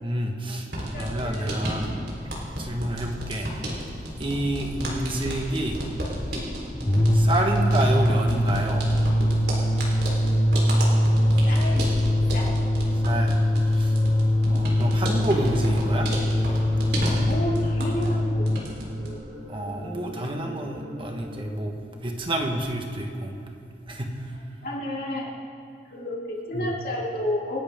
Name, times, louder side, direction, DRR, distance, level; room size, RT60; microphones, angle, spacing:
voice 1, 0.0-0.7 0.9-1.9 2.4-3.5 4.2-5.8 7.1-8.9 13.0-13.4 13.7-14.0 14.5-16.1 19.5-21.7 22.0-23.4 23.9-24.3 26.5-26.7, right 1 dB, 30° right, 2 dB, 1.4 m, -28 dB
sound 1, 0.7-18.2 18.4-19.1, equal, 65° right, 4.1 m, -32 dB
voice 2, 0.8-1.6 4.6-4.9 11.4-11.9 12.3-12.5 14.5-14.6 17.3-18.5 18.9-19.2 24.6-25.3 25.9-27.6, left 1 dB, 55° left, -3 dB, 3.1 m, -31 dB
sound 2, 6.7-18.7, left 1 dB, 20° left, 0.8 m, -22 dB
sound 3, 8.4-21.5, left 1 dB, 85° right, 4.4 m, -41 dB
28.5 x 11.0 x 3.7 m, 2.6 s
head